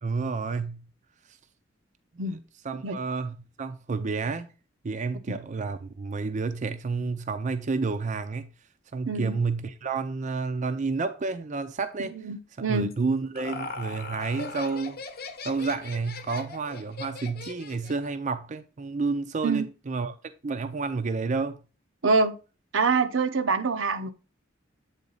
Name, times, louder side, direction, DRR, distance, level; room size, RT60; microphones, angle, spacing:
voice 1, 0.0-0.8 2.1-2.2 2.6-4.5 4.8-8.5 8.9-12.3 12.6-15.0 15.4-20.1 20.4-21.6, right 4 dB, 40° right, 0.5 m, -30 dB
voice 2, 12.0-12.9 19.4-19.7 22.0-22.3 22.7-24.1, right 4 dB, 80° right, 0.8 m, -25 dB
Laughter, 12.9-18.1, left 3 dB, 55° left, 0.8 m, -39 dB
8.2 x 3.8 x 3.9 m
head